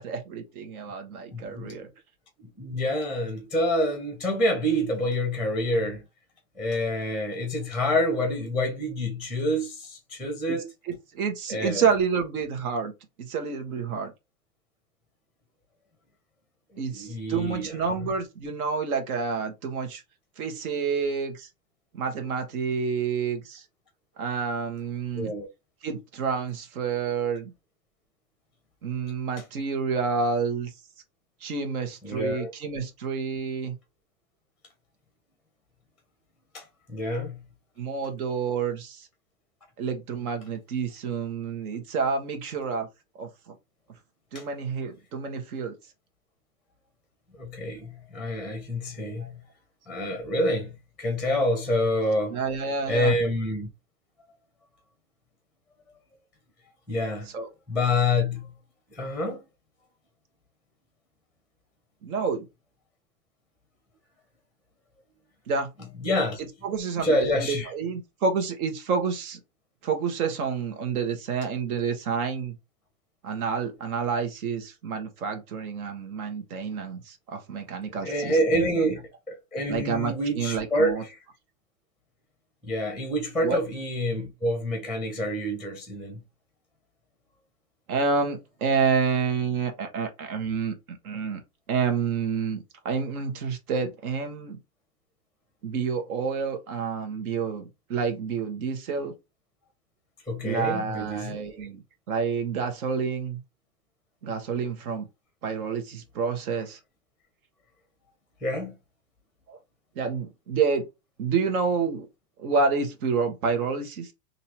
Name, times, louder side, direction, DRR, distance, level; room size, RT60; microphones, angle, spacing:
voice 1, 0.0-1.9 10.5-10.6 10.9-12.9 13.2-14.1 16.8-20.0 20.4-21.5 21.9-23.6 24.2-25.3 25.8-27.5 28.8-30.7 31.4-33.7 37.8-39.1 39.8-42.9 43.2-43.3 44.3-45.7 49.2-49.3 52.3-53.1 57.3-57.5 62.0-62.5 65.5-65.7 66.6-69.4 69.8-72.5 73.2-79.0 79.7-81.0 83.4-83.6 87.9-91.4 91.7-94.6 95.6-99.1 100.4-101.8 102.1-103.4 104.2-105.1 105.4-106.8 109.5-109.6 109.9-110.8 111.2-112.1 112.4-114.1, right 5 dB, 70° right, 1.6 m, -29 dB
voice 2, 1.3-1.8 2.4-6.0 6.6-10.7 11.5-11.9 16.9-17.8 25.1-25.5 32.0-32.5 36.5-37.4 44.3-44.4 47.4-49.4 49.9-50.7 51.0-52.4 52.9-53.7 56.9-57.3 57.7-58.5 58.9-59.4 66.0-66.4 67.0-67.7 78.0-81.2 82.6-86.2 100.3-101.4 108.4-108.8, left 1 dB, ahead, 0.7 m, -27 dB
4.0 x 2.8 x 2.9 m
supercardioid pair, 140°, 45 cm